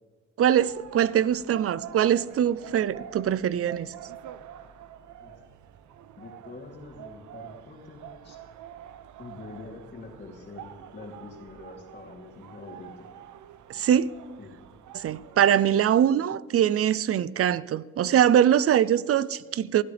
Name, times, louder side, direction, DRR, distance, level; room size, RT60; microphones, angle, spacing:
voice 1, 0.4-3.9 13.7-14.1 14.9-19.8, right 10 dB, 50° right, 0.6 m, -23 dB
sound 1, 0.6-15.5, right 10 dB, 75° right, 0.9 m, -46 dB
voice 2, 6.2-8.4 9.2-13.1 14.4-14.6, left 3 dB, 35° left, 3.0 m, -45 dB
23.5 x 13.0 x 3.4 m
cardioid pair, 90°, 30 cm